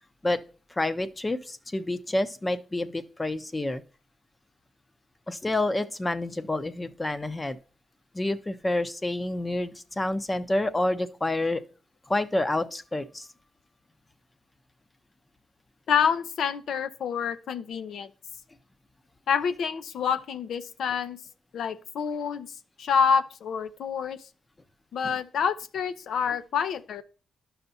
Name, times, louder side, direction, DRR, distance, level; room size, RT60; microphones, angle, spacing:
voice 1, 0.7-3.8 5.3-7.6 8.1-11.6 12.1-13.3, left 2 dB, 20° left, 10 dB, 0.6 m, -28 dB
voice 2, 15.9-18.1 19.3-21.2 21.5-22.5 22.8-24.2 24.9-27.0, left 7 dB, 80° left, 12 dB, 0.6 m, -27 dB
11.5 x 5.7 x 2.7 m, 0.37 s
cardioid pair, 65°, 0 cm